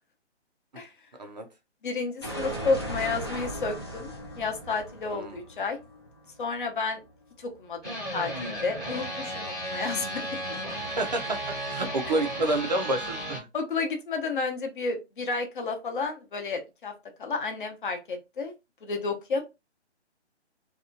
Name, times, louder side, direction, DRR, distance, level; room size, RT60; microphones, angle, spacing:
voice 1, 1.8-4.1 4.4-5.8 6.4-7.0 7.4-10.4 13.5-16.9 17.2-18.5 18.8-19.4, left 4 dB, 45° left, 0.7 m, -31 dB
sound 1, 2.2-7.0, equal, 25° left, 0.3 m, -37 dB
sound 2, 7.8-13.4, right 1 dB, ahead, 0.7 m, -34 dB
voice 2, 11.0-11.4 11.7-13.5, right 2 dB, 40° right, 0.4 m, -28 dB
2.7 x 2.3 x 2.5 m
hypercardioid pair, 160°, 34 cm